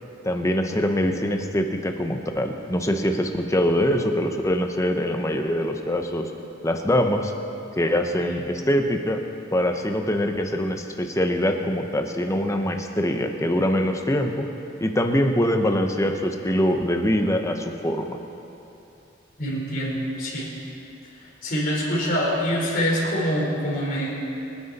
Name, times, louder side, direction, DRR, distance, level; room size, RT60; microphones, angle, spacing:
voice 1, 0.2-6.3 6.6-7.3 7.7-9.2 9.5-14.5 14.8-18.2, equal, 15° left, 4 dB, 0.9 m, -23 dB
voice 2, 19.4-20.5 21.4-24.1, equal, 45° left, -5 dB, 4.2 m, -25 dB
25.0 x 9.7 x 4.2 m, 2.8 s
head